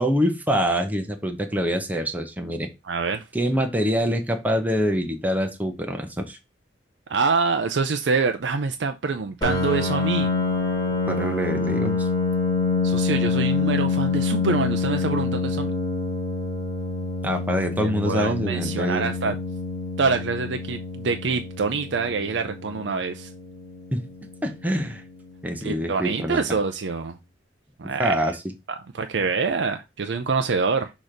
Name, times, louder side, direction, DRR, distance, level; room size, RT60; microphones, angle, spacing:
voice 1, 0.0-2.7 3.3-6.4 11.1-12.1 17.2-19.1 23.9-24.0 24.4-25.0 25.4-26.6 28.0-28.5, equal, 10° right, 0.9 m, -25 dB
voice 2, 2.8-3.2 7.1-10.3 12.8-15.7 17.8-19.3 20.0-23.3 25.6-27.1 27.8-28.2 28.9-30.9, right 4 dB, 85° right, 0.5 m, -25 dB
Piano, 9.4-24.8, left 4 dB, 25° left, 1.9 m, -27 dB
6.3 x 3.0 x 5.1 m
head